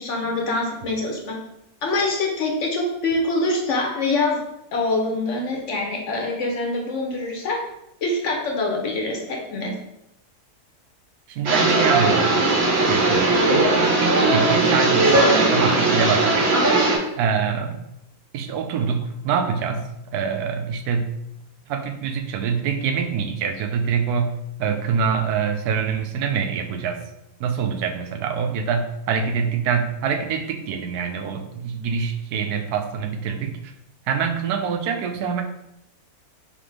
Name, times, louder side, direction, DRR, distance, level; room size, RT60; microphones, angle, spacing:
voice 1, 0.0-1.4 1.8-4.4 4.7-7.6 8.0-9.7, left 2 dB, 60° left, 1 dB, 1.0 m, -24 dB
voice 2, 11.3-16.5 17.2-17.8 18.3-19.8 20.1-21.1 21.7-24.3 24.6-27.0 27.4-33.7 34.1-35.4, right 6 dB, 85° right, 5 dB, 1.1 m, -25 dB
sound 1, 11.5-17.0, right 2 dB, 50° right, 1.0 m, -18 dB
4.1 x 3.3 x 3.2 m, 0.83 s
omnidirectional pair, 1.6 m